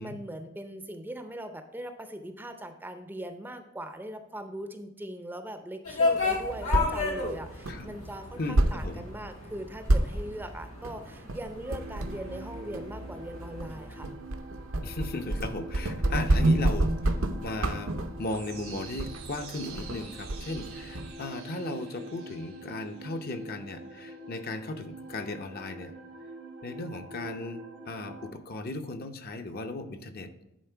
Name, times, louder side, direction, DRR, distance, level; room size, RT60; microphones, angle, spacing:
voice 1, 0.0-14.1, right 1 dB, 10° right, 7 dB, 0.5 m, -40 dB
sound 1, 5.9-14.1, left 4 dB, 90° left, 1.9 m, -33 dB
sound 2, 6.2-21.1, right 1 dB, 75° right, 0.8 m, -30 dB
voice 2, 8.4-9.1 14.8-25.9 26.6-30.3, left 2 dB, 45° left, 6 dB, 0.7 m, -37 dB
sound 3, 11.7-28.3, right 2 dB, 90° right, 2.1 m, -45 dB
10.5 x 4.2 x 4.5 m, 0.90 s
head